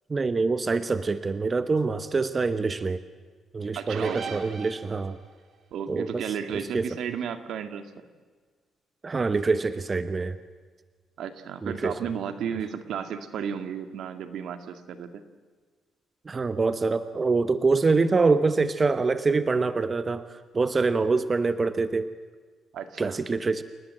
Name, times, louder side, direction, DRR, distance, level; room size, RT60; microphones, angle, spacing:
voice 1, 0.1-3.0 3.5-5.2 5.9-6.2 6.5-6.9 9.0-10.4 11.6-11.9 16.2-22.1 23.0-23.6, right 4 dB, 30° right, 12 dB, 1.0 m, -25 dB
voice 2, 3.7-4.4 5.7-7.9 11.2-15.2 22.7-23.2, right 8 dB, 75° right, 9 dB, 2.0 m, -33 dB
sound 1, 3.9-5.3, right 5 dB, 60° right, 3.7 m, -38 dB
29.0 x 19.0 x 7.7 m, 1.5 s
cardioid pair, 90°, 0 cm